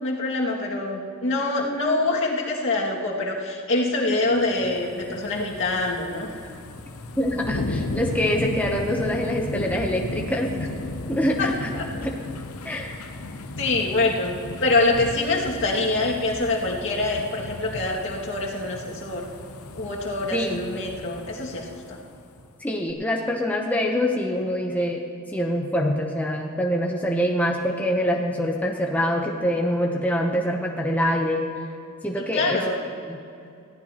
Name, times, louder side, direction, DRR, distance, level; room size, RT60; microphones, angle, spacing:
voice 1, 0.0-6.3 11.4-11.5 11.7-11.8 13.6-14.4 14.6-19.3 19.8-22.0 32.3-32.8, left 2 dB, 60° left, -3 dB, 2.1 m, -25 dB
sound 1, 4.3-22.5 22.9-23.0, left 2 dB, 90° left, 0.8 m, -35 dB
voice 2, 7.2-10.7 11.1-11.7 12.0-12.1 12.6-13.1 20.3-20.6 22.6-25.0 25.3-31.4 32.0-32.6 33.1-33.2, equal, 5° left, 0 dB, 0.8 m, -25 dB
20.5 x 15.0 x 2.9 m, 2.4 s
head